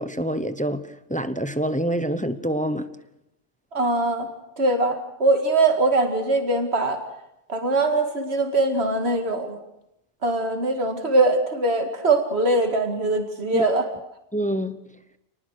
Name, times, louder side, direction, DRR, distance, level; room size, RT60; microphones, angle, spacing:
voice 1, 0.0-2.9 13.5-13.7 14.3-14.8, right 1 dB, 5° left, 0.8 m, -26 dB
voice 2, 3.7-4.3 4.6-7.0 7.5-9.6 10.2-13.8, right 2 dB, 55° right, 2.5 m, -22 dB
28.0 x 19.5 x 6.6 m
omnidirectional pair, 1.3 m